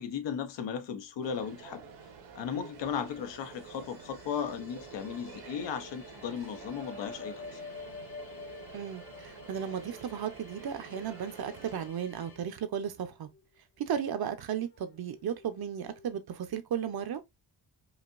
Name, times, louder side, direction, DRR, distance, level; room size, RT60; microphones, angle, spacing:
voice 1, 0.0-1.8 2.3-7.6, left 7 dB, 85° left, 0.9 m, -36 dB
sound 1, 1.2-11.9, right 5 dB, 80° right, 1.5 m, -49 dB
sound 2, 2.3-12.4, left 6 dB, 60° left, 1.4 m, -57 dB
sound 3, 4.7-5.9 6.2-16.1, left 4 dB, 30° left, 0.4 m, -50 dB
voice 2, 8.7-13.3 13.8-17.2, right 8 dB, 60° right, 0.9 m, -35 dB
5.1 x 2.8 x 2.5 m
cardioid pair, 135°, 42 cm